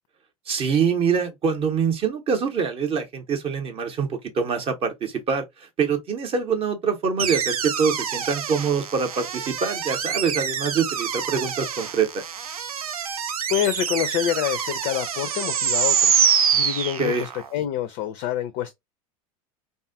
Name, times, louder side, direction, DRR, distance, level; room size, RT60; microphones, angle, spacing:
voice 1, 0.5-12.2 17.0-17.3, right 6 dB, 30° right, 0.7 m, -25 dB
sound 1, 7.2-17.5, right 7 dB, 75° right, 0.4 m, -25 dB
voice 2, 13.5-18.7, left 11 dB, 45° left, 0.4 m, -27 dB
2.6 x 2.3 x 2.4 m
figure-of-eight pair, 80°, 19 cm